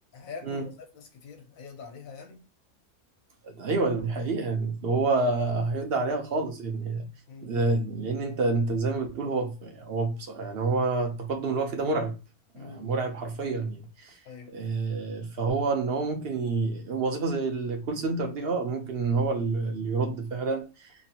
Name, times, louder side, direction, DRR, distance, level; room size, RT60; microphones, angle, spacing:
voice 1, 0.1-2.4 7.3-7.7 12.5-13.0 14.2-14.5, left 5 dB, 70° left, 1.2 m, -44 dB
voice 2, 3.4-7.1 7.4-12.2 12.5-14.2 14.5-20.9, right 3 dB, 55° right, 0.7 m, -28 dB
3.0 x 2.5 x 2.8 m
omnidirectional pair, 1.6 m